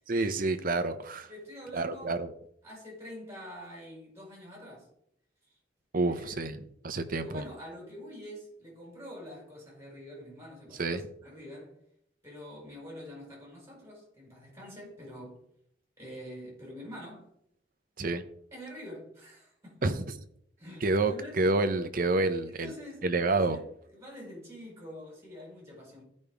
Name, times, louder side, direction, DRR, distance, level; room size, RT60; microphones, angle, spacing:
voice 1, 0.1-1.3 1.7-2.3 5.9-7.4 10.8-11.1 18.0-18.2 19.8-20.2 20.8-22.7 23.0-23.6, right 2 dB, 50° right, 0.8 m, -28 dB
voice 2, 1.3-2.1 2.6-4.9 5.4-5.6 6.1-6.4 7.2-11.8 12.2-15.4 16.0-17.3 18.5-20.0 20.6-21.4 22.4-26.0, equal, 15° right, 4.4 m, -46 dB
14.5 x 5.3 x 3.5 m
head